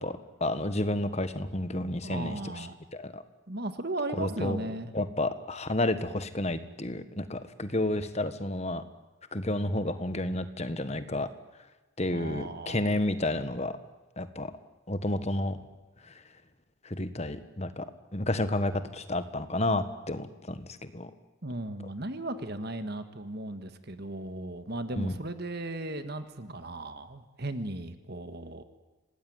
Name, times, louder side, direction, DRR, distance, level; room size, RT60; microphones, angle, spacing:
voice 1, 0.0-2.7 2.9-3.2 4.1-8.8 9.3-11.3 12.0-13.8 14.2-14.5 14.9-15.6 16.0-16.2 16.8-17.9 18.1-21.1 25.0-25.1, left 1 dB, 30° left, 11 dB, 1.5 m, -31 dB
voice 2, 2.0-2.7 3.5-4.9 12.0-13.0 21.4-28.6, right 2 dB, 50° right, 9 dB, 1.7 m, -36 dB
26.5 x 18.5 x 9.6 m, 1.2 s
head